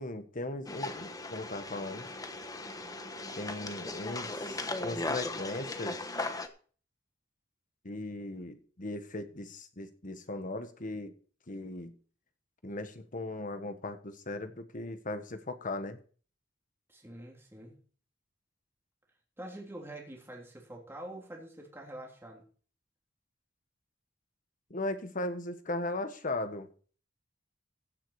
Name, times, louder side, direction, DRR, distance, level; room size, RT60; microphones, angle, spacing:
voice 1, 0.0-2.1 3.3-6.0 7.8-11.1 11.5-11.9 12.6-16.0 24.7-26.7, left 2 dB, 45° left, 9 dB, 1.4 m, -38 dB
sound 1, 0.7-6.5, left 2 dB, 20° left, 1.2 m, -38 dB
voice 2, 16.9-17.8 19.4-22.4, right 1 dB, 15° right, -1 dB, 3.4 m, -46 dB
16.0 x 7.6 x 4.9 m, 0.42 s
head